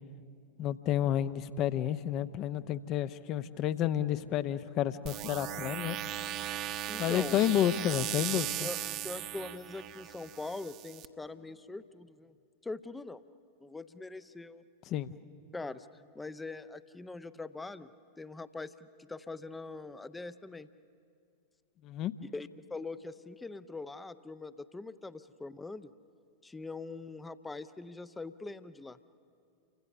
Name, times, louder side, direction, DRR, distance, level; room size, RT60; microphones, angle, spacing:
voice 1, 0.6-6.0 7.0-8.7 14.9-15.1 21.8-22.1, left 11 dB, 35° left, 14 dB, 0.9 m, -30 dB
sound 1, 5.1-11.1, right 12 dB, 40° right, 1.1 m, -38 dB
voice 2, 6.9-7.4 8.6-12.3 12.6-13.2 13.6-14.6 15.5-15.9 16.1-17.9 18.2-20.7 22.3-25.9 26.4-29.0, left 3 dB, 10° left, 14 dB, 0.7 m, -42 dB
29.5 x 24.5 x 6.8 m, 2.5 s
figure-of-eight pair, 90°, 0 cm